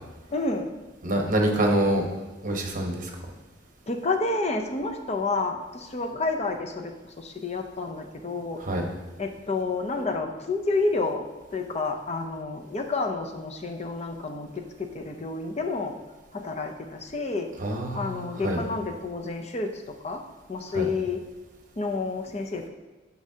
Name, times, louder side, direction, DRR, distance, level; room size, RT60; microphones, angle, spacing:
voice 1, 0.3-0.7 3.9-6.9 7.2-8.6 9.2-11.2 11.5-15.9 16.3-17.5 18.0-19.7 20.0-20.2 20.5-21.2 21.8-22.7, left 3 dB, 35° left, 4 dB, 0.6 m, -29 dB
voice 2, 1.0-2.1 2.4-3.1 8.6-8.9 17.6-18.6 20.7-20.9, right 1 dB, 45° right, 2 dB, 1.1 m, -26 dB
9.6 x 6.2 x 2.8 m, 1.2 s
head